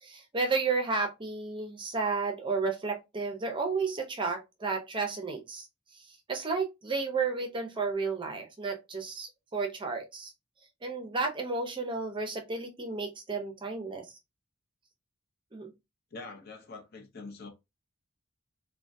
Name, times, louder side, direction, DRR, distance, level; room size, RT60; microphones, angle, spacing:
voice 1, 0.0-5.7 6.3-10.3 10.8-14.0 15.5-15.7, right 4 dB, 25° right, 0.6 m, -32 dB
voice 2, 16.1-17.5, left 3 dB, 50° left, 0.7 m, -44 dB
3.7 x 2.2 x 2.5 m
head